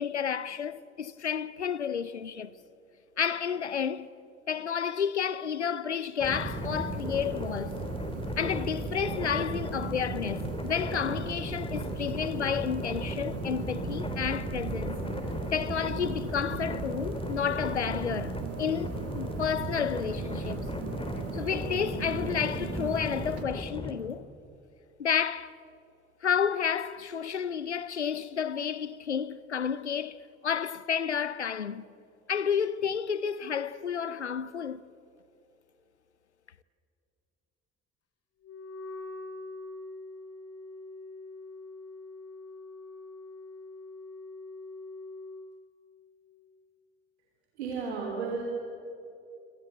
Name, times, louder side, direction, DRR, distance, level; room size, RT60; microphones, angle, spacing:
voice 1, 0.0-2.5 3.2-4.1 4.5-7.8 8.4-15.0 15.5-20.7 21.3-24.2 25.0-25.6 26.2-31.8 32.3-34.8, left 7 dB, 90° left, 0.6 m, -31 dB
sound 1, 6.2-23.9, left 2 dB, 15° left, 3.6 m, -37 dB
sound 2, 6.3-23.4, right 8 dB, 45° right, 2.1 m, -38 dB
Wind instrument woodwind instrument, 38.4-45.5, left 2 dB, 45° left, 3.2 m, -44 dB
voice 2, 47.6-48.4, right 5 dB, 75° right, 3.2 m, -33 dB
27.0 x 26.0 x 8.2 m
figure-of-eight pair, 55°, 33 cm